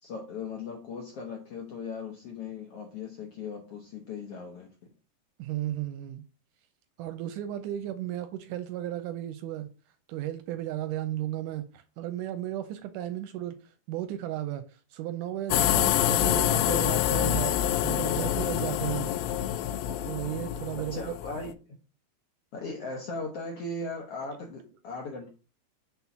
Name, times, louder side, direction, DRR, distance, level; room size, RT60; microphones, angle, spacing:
voice 1, 0.0-4.7 20.8-21.5 22.5-25.3, left 3 dB, 70° left, 1.4 m, -38 dB
voice 2, 5.4-6.2 7.0-9.7 10.1-13.6 13.9-14.6 14.9-17.6 17.8-19.1 20.0-21.0, right 12 dB, 80° right, 2.0 m, -34 dB
sound 1, 15.5-21.5, left 11 dB, 85° left, 2.3 m, -27 dB
5.5 x 4.5 x 5.8 m
omnidirectional pair, 4.0 m